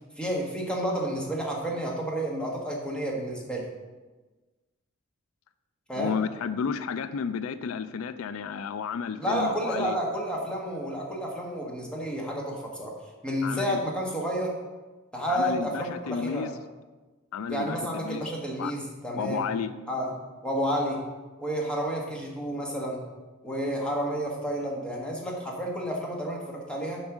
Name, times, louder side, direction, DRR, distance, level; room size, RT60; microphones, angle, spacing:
voice 1, 0.2-3.7 5.9-6.1 9.2-12.9 13.2-14.5 15.1-16.5 17.5-19.4 19.9-20.1 20.4-21.0 21.4-23.0 23.4-27.0, equal, 5° left, -2 dB, 1.6 m, -30 dB
voice 2, 6.0-10.0 13.4-13.8 15.3-16.6 17.3-18.3 18.6-18.7 19.1-19.7, left 6 dB, 80° left, 13 dB, 0.4 m, -32 dB
7.1 x 5.3 x 6.1 m, 1.2 s
head